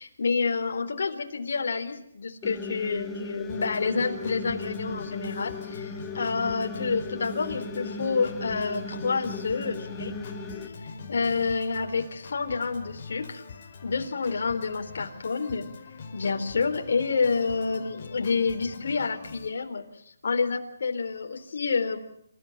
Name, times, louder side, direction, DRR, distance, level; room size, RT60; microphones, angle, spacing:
voice 1, 0.0-10.1 10.8-13.4 13.8-15.7 16.1-19.8 20.2-22.0, left 4 dB, 60° left, 4 dB, 4.0 m, -28 dB
sound 1, 2.4-10.7, left 3 dB, 5° left, 1.5 m, -37 dB
Organ, 3.5-19.5, left 4 dB, 35° left, 5.1 m, -43 dB
27.5 x 15.0 x 8.7 m, 0.71 s
hypercardioid pair, 165°, 0 cm